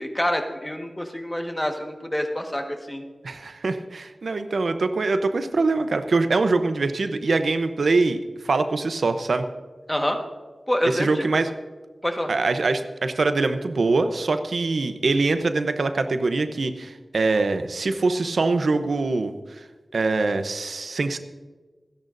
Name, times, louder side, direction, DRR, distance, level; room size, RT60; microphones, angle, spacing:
voice 1, 0.0-3.0 9.9-10.2 10.7-11.3 12.0-12.3, equal, 10° left, 4 dB, 1.5 m, -27 dB
voice 2, 3.2-8.2 8.4-9.5 10.9-11.5 12.3-19.6 19.9-21.2, right 3 dB, 75° right, 8 dB, 0.8 m, -23 dB
28.0 x 10.5 x 2.6 m, 1.3 s
wide cardioid pair, 70°, 0 cm